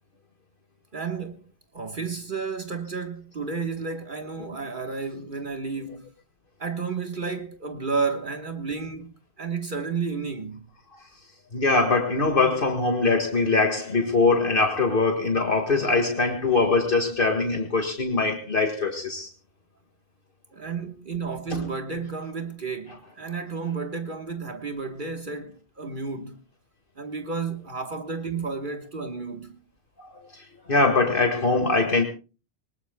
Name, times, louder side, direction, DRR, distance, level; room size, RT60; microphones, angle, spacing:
voice 1, 0.9-6.1 6.6-10.7 20.5-26.4 27.0-29.6, right 5 dB, 50° right, 1.5 m, -32 dB
voice 2, 11.5-19.3 21.5-21.6 30.0-32.0, left 3 dB, 55° left, 2.0 m, -22 dB
23.5 x 20.0 x 2.2 m
omnidirectional pair, 1.1 m